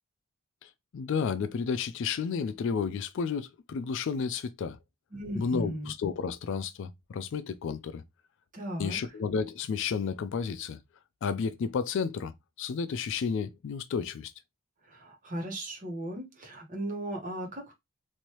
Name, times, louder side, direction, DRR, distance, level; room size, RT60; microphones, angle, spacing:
voice 1, 0.6-4.8 5.4-8.0 8.8-10.8 11.2-14.3, left 6 dB, 55° left, 0.3 m, -32 dB
voice 2, 5.1-5.9 8.5-9.0 14.8-17.7, right 1 dB, 35° right, 1.1 m, -36 dB
3.2 x 2.6 x 2.8 m
head